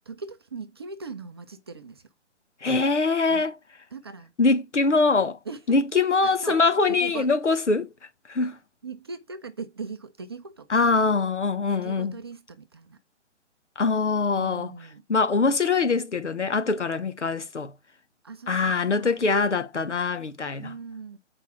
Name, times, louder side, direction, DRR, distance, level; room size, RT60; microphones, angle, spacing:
voice 1, 0.1-2.1 3.3-3.4 3.9-4.3 5.4-6.6 6.9-7.3 8.8-10.8 11.7-13.0 14.3-15.0 18.2-19.2 20.6-21.2, right 4 dB, 20° right, 0.5 m, -40 dB
voice 2, 2.6-3.5 4.4-5.4 5.7-7.9 8.3-8.6 10.7-12.2 13.8-14.7 15.1-17.7 18.5-20.7, left 4 dB, 75° left, 1.1 m, -23 dB
8.2 x 4.8 x 4.4 m
figure-of-eight pair, 135°, 36 cm